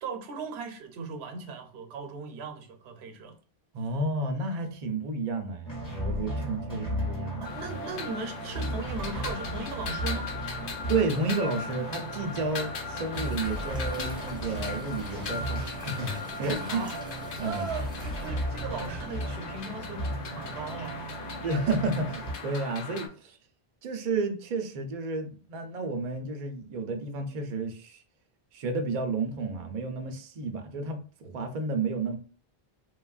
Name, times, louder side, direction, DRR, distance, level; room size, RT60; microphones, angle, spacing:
voice 1, 0.0-3.4 7.4-10.3 16.6-17.0 17.4-21.1, right 4 dB, 80° right, 0.8 m, -38 dB
voice 2, 3.7-7.8 10.9-16.1 16.4-16.8 17.4-17.7 21.4-23.4 23.8-28.0 28.5-32.2, right 3 dB, 55° right, 0.5 m, -31 dB
sound 1, 5.6-22.3, right 1 dB, 20° left, 1.0 m, -36 dB
sound 2, 7.4-23.1, left 5 dB, 65° left, 0.7 m, -39 dB
sound 3, 13.1-18.3, equal, 5° right, 0.6 m, -48 dB
3.1 x 2.3 x 2.3 m
omnidirectional pair, 1.0 m